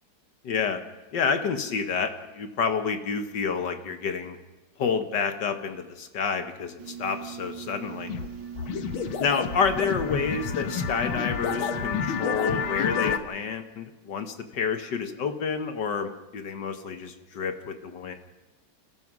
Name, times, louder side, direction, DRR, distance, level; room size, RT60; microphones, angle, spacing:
voice 1, 0.4-0.8 1.1-4.4 4.8-8.1 9.2-18.1, left 5 dB, 60° left, 8 dB, 1.8 m, -29 dB
sound 1, 6.8-13.1, right 8 dB, 80° right, 1.9 m, -40 dB
sound 2, 8.1-8.3 8.5-13.2, left 7 dB, 85° left, 1.9 m, -29 dB
30.0 x 14.5 x 6.1 m, 1.1 s
omnidirectional pair, 2.2 m